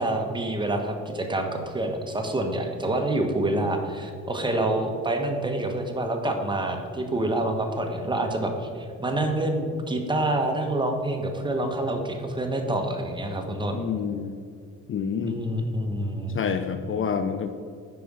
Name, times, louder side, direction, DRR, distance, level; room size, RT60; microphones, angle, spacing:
voice 1, 0.0-13.8 15.2-16.4, right 1 dB, 15° right, 3 dB, 1.3 m, -27 dB
voice 2, 13.7-14.4 14.9-15.4 16.3-17.5, left 6 dB, 45° left, 8 dB, 0.5 m, -28 dB
9.4 x 5.1 x 6.3 m, 2.2 s
cardioid pair, 90°, 30 cm